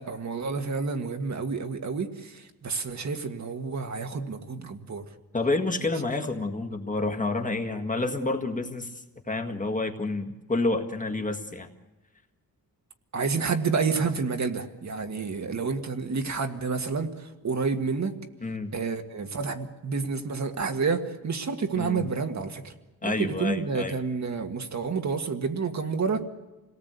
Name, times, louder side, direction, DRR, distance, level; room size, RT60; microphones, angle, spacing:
voice 1, 0.0-5.0 13.1-18.2 18.7-22.7 23.0-26.3, right 5 dB, 50° right, 5 dB, 1.8 m, -29 dB
voice 2, 5.3-8.9 9.3-11.7 18.4-18.7 21.7-22.0 23.0-24.0, left 2 dB, 20° left, 4 dB, 1.8 m, -29 dB
27.5 x 18.5 x 8.2 m, 1.1 s
wide cardioid pair, 160°, 35 cm